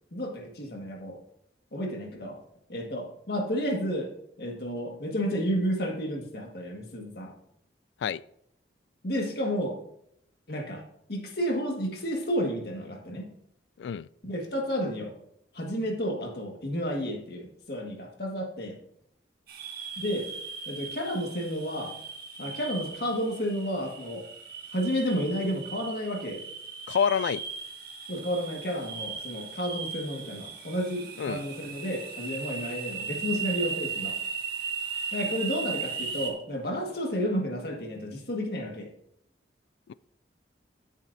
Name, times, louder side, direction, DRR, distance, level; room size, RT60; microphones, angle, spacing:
voice 1, 0.1-1.2 1.7-2.4 2.7-4.1 4.4-7.3 9.0-9.8 10.5-10.8 11.1-13.3 14.2-15.1 15.5-18.8 20.0-20.3 20.7-21.9 22.4-24.3 24.7-26.4 28.1-34.2 35.1-38.9, equal, 55° left, 1 dB, 1.8 m, -31 dB
voice 2, 13.8-14.1 26.9-27.4 31.2-31.4, left 7 dB, 75° left, 19 dB, 0.3 m, -27 dB
sound 1, 19.5-36.3, right 6 dB, 55° right, 1.7 m, -37 dB
16.0 x 7.3 x 2.7 m, 0.74 s
head